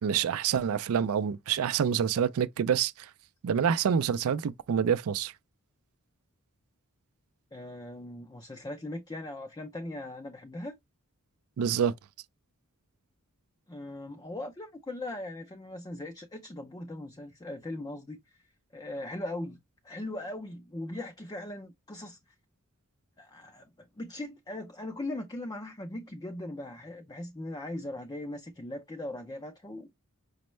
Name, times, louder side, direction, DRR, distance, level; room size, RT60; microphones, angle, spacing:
voice 1, 0.0-3.1 3.4-5.3 11.6-11.9, right 7 dB, 65° right, 0.4 m, -27 dB
voice 2, 7.5-10.8 13.7-18.4 18.7-19.6 19.8-22.2 23.2-29.9, left 1 dB, 20° left, 0.4 m, -39 dB
5.2 x 2.0 x 3.1 m
head